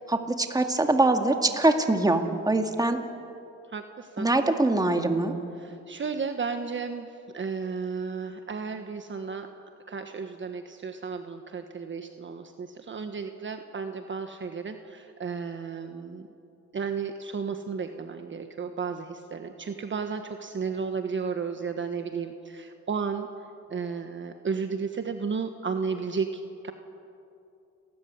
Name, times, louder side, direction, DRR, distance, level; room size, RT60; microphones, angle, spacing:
voice 1, 0.1-3.0 4.2-5.3, right 2 dB, 10° right, 5 dB, 2.2 m, -23 dB
voice 2, 3.7-4.3 5.6-9.5 9.9-16.3 16.7-23.3 23.7-26.7, right 5 dB, 40° right, 7 dB, 1.4 m, -33 dB
30.0 x 14.0 x 9.7 m, 2.6 s
cardioid pair, 90°, 30 cm